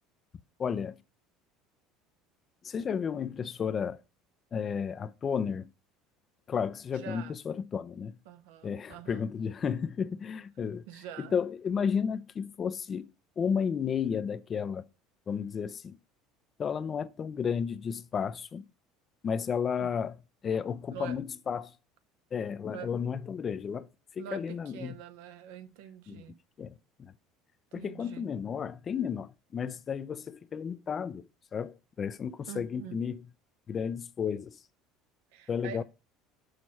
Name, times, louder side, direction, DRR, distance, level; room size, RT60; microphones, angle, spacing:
voice 1, 0.6-1.0 2.6-4.0 4.5-5.7 6.5-8.2 8.6-10.8 11.2-13.1 13.4-14.9 15.3-16.0 16.6-18.7 19.2-20.1 20.4-21.7 22.3-23.9 24.1-25.0 26.1-26.2 26.6-27.1 27.7-33.2 33.7-34.6 35.5-35.8, left 7 dB, 35° left, 0.4 m, -33 dB
voice 2, 6.9-7.3 8.3-9.3 10.9-11.4 19.8-19.9 20.9-21.2 22.7-22.9 24.2-26.4 27.7-28.2 32.5-33.0 35.3-35.8, right 9 dB, 80° right, 0.6 m, -45 dB
6.3 x 3.1 x 5.5 m
supercardioid pair, 100°, 0 cm